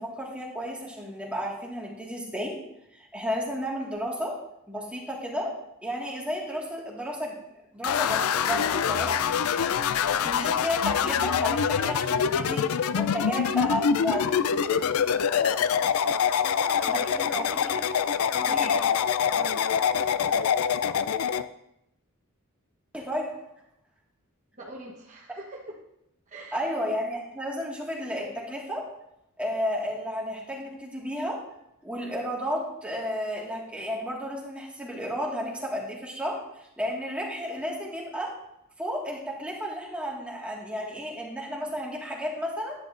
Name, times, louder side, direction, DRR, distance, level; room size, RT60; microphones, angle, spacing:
voice 1, 0.0-2.5 2.9-4.3 4.7-5.5 5.8-7.4 7.7-9.2 10.0-12.6 12.9-14.3 16.9-17.7 18.5-18.7 22.9-23.3 26.5-28.8 29.4-31.4 31.8-38.3 38.8-42.7, equal, 5° right, -3 dB, 1.8 m, -32 dB
sound 1, 7.8-21.4, left 7 dB, 80° left, 0.4 m, -25 dB
voice 2, 16.4-17.9 18.3-18.9 19.4-19.7 24.6-25.8 26.3-26.8, right 1 dB, 35° right, -3 dB, 1.1 m, -43 dB
10.5 x 10.5 x 2.5 m, 0.81 s
head